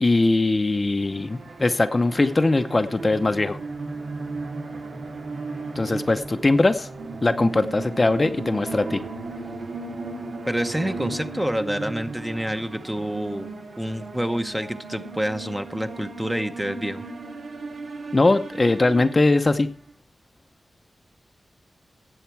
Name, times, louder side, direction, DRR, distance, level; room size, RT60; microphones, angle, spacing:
voice 1, 0.0-3.6 5.8-6.9 7.2-9.0 18.1-19.7, left 2 dB, 25° left, 8 dB, 0.8 m, -21 dB
sound 1, 1.0-19.7, right 3 dB, 90° right, 2.9 m, -36 dB
voice 2, 10.5-13.5 13.8-17.0, equal, 5° right, 8 dB, 0.9 m, -28 dB
17.5 x 8.0 x 4.7 m, 0.39 s
wide cardioid pair, 150°, 0 cm